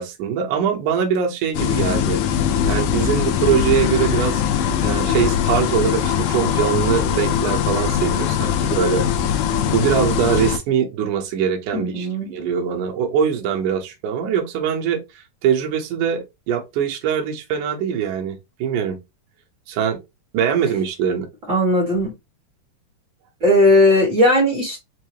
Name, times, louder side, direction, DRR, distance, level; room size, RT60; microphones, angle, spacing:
voice 1, 0.0-2.2 2.6-4.4 4.8-9.3 9.7-19.0 19.7-20.0 20.3-21.3, right 8 dB, 70° right, 2.1 m, -22 dB
sound 1, 1.5-10.6, left 9 dB, 80° left, 1.9 m, -21 dB
voice 2, 11.7-12.3 21.5-22.1 23.4-24.8, left 1 dB, 50° right, 0.9 m, -17 dB
5.4 x 2.0 x 2.9 m
omnidirectional pair, 4.0 m